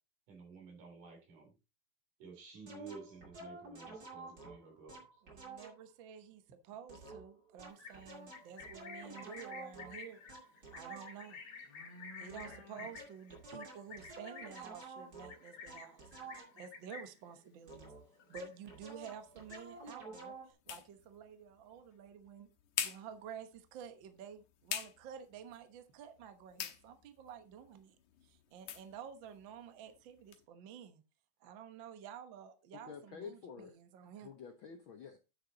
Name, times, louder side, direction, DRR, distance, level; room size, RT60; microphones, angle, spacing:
voice 1, 0.3-1.5 2.2-5.0, right 5 dB, 80° right, 4.7 m, -52 dB
sound 1, 2.7-5.9 6.9-11.4 12.3-12.7 13.0-16.8 17.7-20.5, right 3 dB, 30° right, 2.7 m, -51 dB
voice 2, 5.2-10.2 10.7-11.4 12.2-16.1 16.4-17.9 18.3-22.5 22.8-28.0 28.2-31.0 31.4-34.3, right 8 dB, 60° right, 1.3 m, -51 dB
Livestock farm animals working animals, 7.7-17.3 17.6-17.9 18.2-18.9 19.2-19.9, left 5 dB, 55° left, 3.0 m, -51 dB
sound 2, 18.9-30.5, left 10 dB, 85° left, 2.6 m, -47 dB
voice 3, 32.7-33.8 34.2-35.2, left 6 dB, 70° left, 1.2 m, -49 dB
9.5 x 6.6 x 4.0 m
omnidirectional pair, 3.5 m